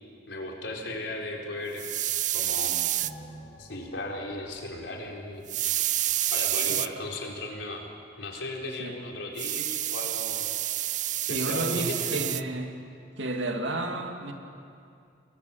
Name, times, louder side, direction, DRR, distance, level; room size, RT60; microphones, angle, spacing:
voice 1, 0.3-1.9 2.3-2.8 3.6-5.9 6.3-7.9 8.2-10.5 10.8-11.0 11.3-12.2, left 2 dB, 75° left, 0 dB, 4.2 m, -36 dB
sound 1, 1.8-3.1 5.5-6.9 9.4-12.4, right 13 dB, 40° right, 0.5 m, -28 dB
sound 2, 3.0-5.9 6.2-6.3, equal, 55° left, 6.1 m, -49 dB
voice 2, 11.2-12.7 13.2-14.3, right 2 dB, 85° right, 3 dB, 2.8 m, -32 dB
29.0 x 21.5 x 7.3 m, 2.5 s
head